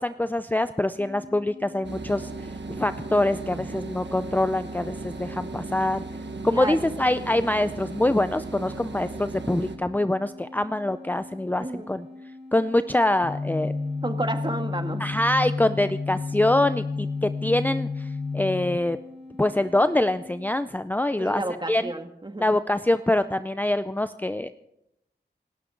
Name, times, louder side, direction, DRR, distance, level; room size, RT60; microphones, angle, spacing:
voice 1, 0.0-2.3 2.7-6.0 6.4-12.1 12.5-13.7 15.0-18.1 18.3-19.0 19.4-21.4 21.7-21.8 22.4-24.5, left 1 dB, 10° left, 11 dB, 0.5 m, -24 dB
sound 1, 1.0-20.5, left 2 dB, 75° right, 4.0 m, -45 dB
sound 2, 1.8-9.8, right 3 dB, 90° right, 1.4 m, -37 dB
voice 2, 6.5-6.9 11.6-11.9 14.0-15.1 21.2-22.5, right 1 dB, 25° right, 7 dB, 1.5 m, -31 dB
sound 3, 13.2-18.8, left 4 dB, 35° left, 1.0 m, -30 dB
26.5 x 13.0 x 3.8 m, 0.83 s
wide cardioid pair, 65°, 18 cm